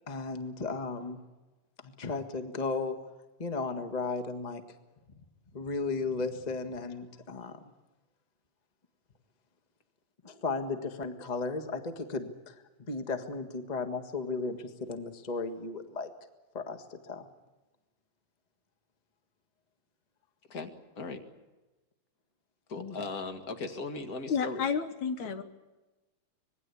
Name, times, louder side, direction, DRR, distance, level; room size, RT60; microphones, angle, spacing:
voice 1, 0.1-1.2 1.8-3.0 3.4-4.6 5.5-7.5 10.2-12.5 12.9-16.1 16.5-17.3 22.8-23.0, left 3 dB, 90° left, 7 dB, 0.3 m, -35 dB
voice 2, 20.5-21.2 22.7-24.6, left 3 dB, 35° left, 7 dB, 1.9 m, -38 dB
voice 3, 24.3-25.4, left 6 dB, 65° left, 9 dB, 2.5 m, -30 dB
25.5 x 21.0 x 8.4 m, 1.1 s
omnidirectional pair, 3.9 m